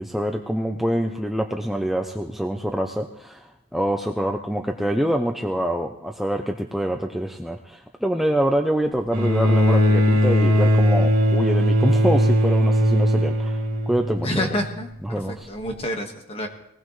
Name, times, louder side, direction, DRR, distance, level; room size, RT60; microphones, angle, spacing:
voice 1, 0.0-13.6 13.9-14.5 15.0-15.5, equal, ahead, 3 dB, 0.6 m, -25 dB
Bowed string instrument, 9.1-14.6 15.7-15.8, equal, 80° right, 3.4 m, -19 dB
voice 2, 14.2-16.5, left 1 dB, 25° left, 3 dB, 1.6 m, -28 dB
19.5 x 19.5 x 3.2 m, 0.83 s
head